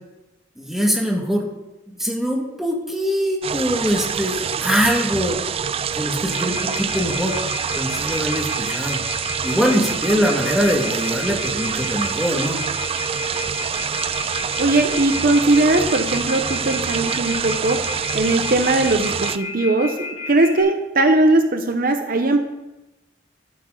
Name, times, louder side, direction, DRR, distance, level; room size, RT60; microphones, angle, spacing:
voice 1, 0.6-1.5 2.0-5.4 6.0-7.4 7.8-9.0 9.4-12.6, equal, ahead, -1 dB, 1.8 m, -22 dB
sound 1, 3.4-19.4, right 7 dB, 30° right, 0.3 m, -26 dB
Telephone, 6.3-20.6, left 5 dB, 50° left, 5.3 m, -32 dB
voice 2, 14.6-22.4, right 2 dB, 50° right, 6 dB, 0.8 m, -19 dB
12.5 x 12.0 x 3.9 m, 1.0 s
head